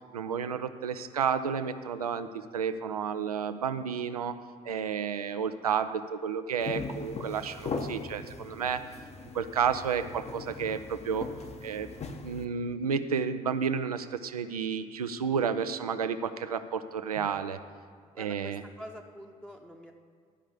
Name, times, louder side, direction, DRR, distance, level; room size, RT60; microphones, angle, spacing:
voice 1, 0.1-2.3 2.5-4.3 4.6-8.8 9.3-11.3 11.6-11.9 12.2-17.6 18.2-18.6, right 6 dB, 85° right, 10 dB, 0.4 m, -31 dB
sound 1, 6.6-12.4, left 4 dB, 35° left, 0.9 m, -40 dB
voice 2, 18.1-19.9, equal, 5° left, 0 dB, 0.8 m, -46 dB
11.5 x 5.4 x 7.3 m, 2.1 s
figure-of-eight pair, 45°, 19 cm